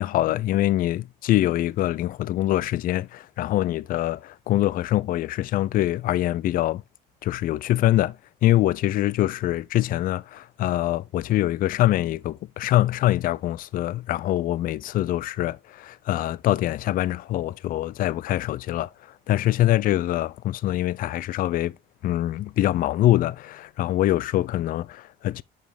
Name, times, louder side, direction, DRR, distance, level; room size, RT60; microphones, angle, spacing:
voice 1, 0.0-6.8 7.2-8.2 8.4-18.9 19.3-21.8 22.0-25.4, left 14 dB, 55° left, 0.4 m, -24 dB
7.3 x 5.1 x 3.5 m
cardioid pair, 110°, 17 cm